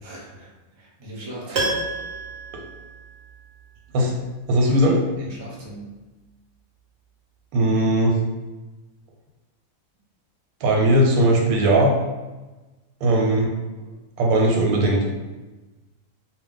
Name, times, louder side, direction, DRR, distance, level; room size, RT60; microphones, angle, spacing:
voice 1, 0.0-1.7 4.6-4.8 5.2-5.9, right 1 dB, 40° right, -4 dB, 0.4 m, -39 dB
Piano, 1.5-3.6 3.9-4.0, right 2 dB, 60° right, 0.8 m, -29 dB
voice 2, 4.5-5.3 7.5-8.2 10.6-12.0 13.0-13.5 14.2-15.0, right 1 dB, 90° right, 0 dB, 1.1 m, -19 dB
2.4 x 2.1 x 3.7 m, 1.2 s
omnidirectional pair, 1.5 m